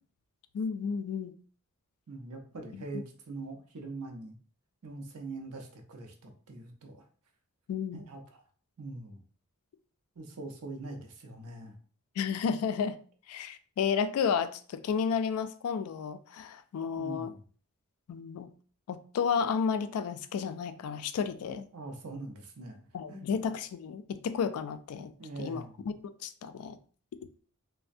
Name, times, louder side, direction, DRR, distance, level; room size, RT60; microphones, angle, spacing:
voice 1, 0.5-1.3 2.7-3.0 7.7-8.0 12.2-13.0 13.3-17.3 18.1-18.5 18.9-21.6 22.9-25.1 25.4-25.6 26.2-26.8, left 6 dB, 75° left, 0.3 m, -32 dB
voice 2, 2.1-4.4 4.8-7.0 7.9-8.4 8.8-9.2 10.2-11.8 17.0-17.4 21.7-23.3 25.2-25.8, right 2 dB, 85° right, 0.6 m, -43 dB
3.2 x 2.1 x 2.5 m
head